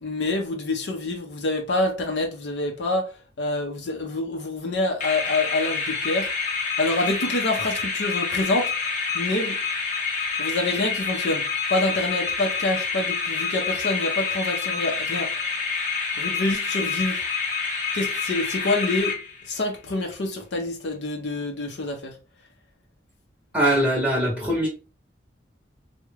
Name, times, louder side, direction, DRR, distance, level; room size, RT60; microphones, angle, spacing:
voice 1, 0.0-3.1 3.4-6.3 6.8-8.9 9.1-9.6 10.4-15.3 16.2-17.2 17.9-19.2 19.5-22.1, left 2 dB, 75° left, 0.6 m, -26 dB
sound 1, 5.0-19.7, left 5 dB, 45° left, 0.8 m, -28 dB
voice 2, 23.5-24.7, right 1 dB, 5° right, 0.7 m, -21 dB
3.5 x 2.1 x 3.1 m
head